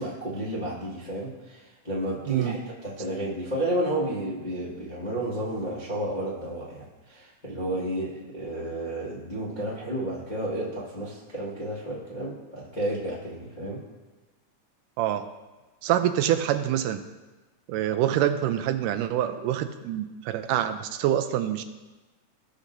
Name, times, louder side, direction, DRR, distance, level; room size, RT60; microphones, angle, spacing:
voice 1, 0.0-13.8, right 1 dB, 25° left, -8 dB, 0.9 m, -32 dB
voice 2, 15.0-15.3 15.8-17.0 17.7-21.6, right 11 dB, 90° right, 8 dB, 2.2 m, -26 dB
17.0 x 6.5 x 2.6 m, 1.2 s
omnidirectional pair, 3.6 m